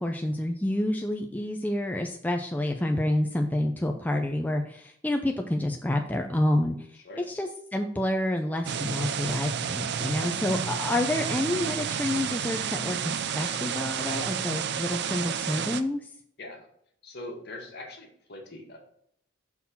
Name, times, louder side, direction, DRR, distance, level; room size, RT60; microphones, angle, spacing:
voice 1, 0.0-7.0 7.3-16.0, left 1 dB, 10° left, 3 dB, 0.4 m, -28 dB
sound 1, 8.7-15.8, right 7 dB, 55° right, 0.5 m, -30 dB
voice 2, 17.0-18.8, left 2 dB, 55° left, 0 dB, 1.6 m, -42 dB
5.6 x 4.3 x 5.6 m, 0.69 s
head